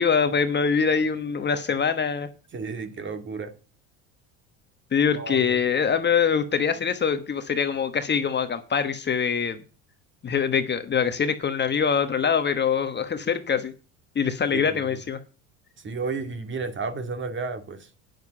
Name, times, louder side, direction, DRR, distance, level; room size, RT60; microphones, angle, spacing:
voice 1, 0.0-2.3 4.9-9.6 10.2-13.7 14.1-15.2, left 6 dB, 30° left, 1.2 m, -24 dB
voice 2, 2.5-3.5 5.1-5.6 14.5-14.8 15.8-17.9, right 4 dB, 30° right, 2.1 m, -32 dB
9.4 x 7.2 x 6.8 m
supercardioid pair, 90°, 37 cm